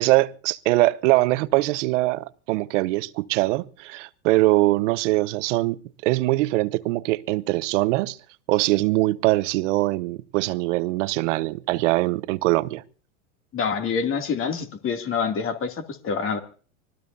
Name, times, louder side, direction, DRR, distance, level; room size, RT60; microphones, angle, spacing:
voice 1, 0.0-8.2 8.5-12.8, right 20 dB, 60° right, 1.0 m, -22 dB
voice 2, 13.5-16.4, left 6 dB, 30° left, 2.7 m, -26 dB
25.5 x 19.0 x 2.8 m
hypercardioid pair, 110°, 41 cm